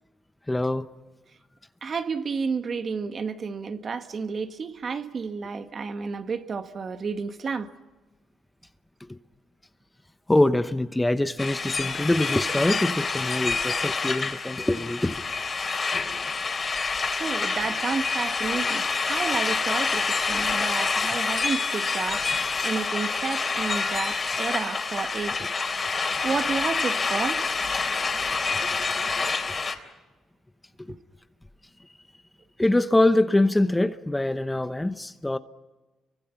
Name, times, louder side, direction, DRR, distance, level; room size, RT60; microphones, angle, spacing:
voice 1, 0.5-0.9 9.1-9.2 10.3-15.2 28.5-28.8 29.5-29.7 32.6-35.4, left 1 dB, 10° left, 0.9 m, -24 dB
voice 2, 1.8-7.7 17.2-18.8 19.1-25.5 26.2-27.5 30.9-31.0, right 5 dB, 45° right, 1.9 m, -31 dB
sound 1, 11.4-29.7, left 4 dB, 35° left, 3.5 m, -27 dB
30.0 x 24.0 x 5.9 m
cardioid pair, 90°, 0 cm